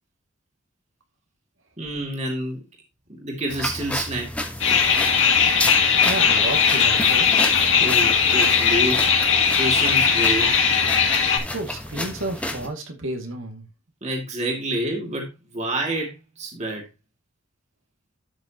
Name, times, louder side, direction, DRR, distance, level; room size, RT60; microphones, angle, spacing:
voice 1, 1.8-2.6 3.1-4.3 7.7-9.1 9.6-10.5 14.0-16.9, right 1 dB, 35° right, 2.5 m, -28 dB
sound 1, 3.5-12.7, left 1 dB, 5° left, 1.2 m, -31 dB
sound 2, 4.6-11.4, left 6 dB, 60° left, 2.7 m, -19 dB
voice 2, 6.0-7.5 11.5-13.6, right 2 dB, 70° right, 2.2 m, -31 dB
12.5 x 6.3 x 2.9 m
head